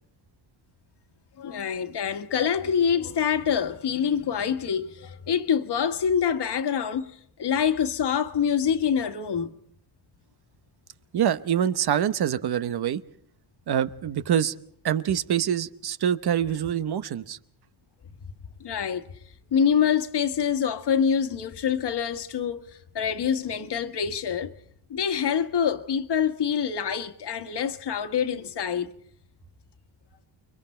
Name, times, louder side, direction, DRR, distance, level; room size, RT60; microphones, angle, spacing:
voice 1, 1.4-9.5 18.6-19.1 19.5-22.6 22.9-24.5 24.9-28.9, left 7 dB, 55° left, 1.7 m, -26 dB
voice 2, 11.1-13.0 13.7-14.5 14.8-17.4, right 9 dB, 55° right, 1.1 m, -25 dB
30.0 x 24.0 x 4.5 m
cardioid pair, 115°, 47 cm